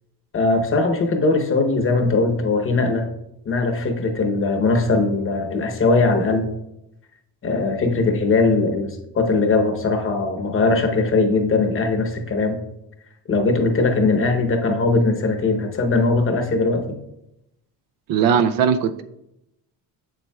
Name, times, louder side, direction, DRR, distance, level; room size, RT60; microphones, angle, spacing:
voice 1, 0.3-3.1 3.4-6.5 7.4-12.6 13.3-17.0, left 3 dB, 30° left, 3 dB, 0.9 m, -20 dB
voice 2, 18.1-19.0, right 7 dB, 60° right, 11 dB, 0.5 m, -19 dB
7.8 x 7.2 x 2.3 m, 0.86 s
cardioid pair, 140°, 41 cm